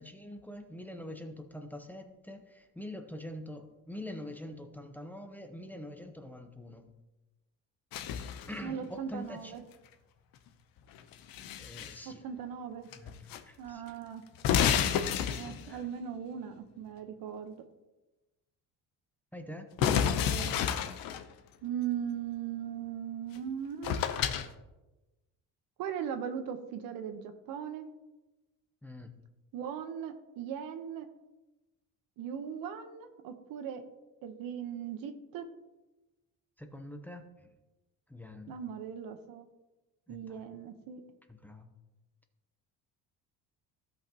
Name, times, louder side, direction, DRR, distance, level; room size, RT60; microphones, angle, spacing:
voice 1, 0.0-6.9 8.5-9.5 11.6-12.2 12.9-13.8 15.4-15.8 19.3-19.7 28.8-29.1 36.6-37.5 38.1-38.6 40.1-40.4 41.3-41.7, left 1 dB, 5° left, 5 dB, 0.7 m, -45 dB
sound 1, 7.9-8.6 10.9-12.0 12.9-13.4 13.7-13.8 14.4-15.8 19.8-21.2 23.4-23.5 23.8-24.5, left 8 dB, 75° left, 0.8 m, -30 dB
voice 2, 8.6-9.6 12.0-12.9 13.6-14.2 15.3-17.6 19.8-20.5 21.6-24.0 25.8-27.9 29.5-31.1 32.2-33.8 34.2-35.5 38.5-39.5 40.1-41.0, right 8 dB, 75° right, 8 dB, 1.0 m, -39 dB
15.5 x 5.6 x 2.9 m, 1.1 s
cardioid pair, 135°, 35 cm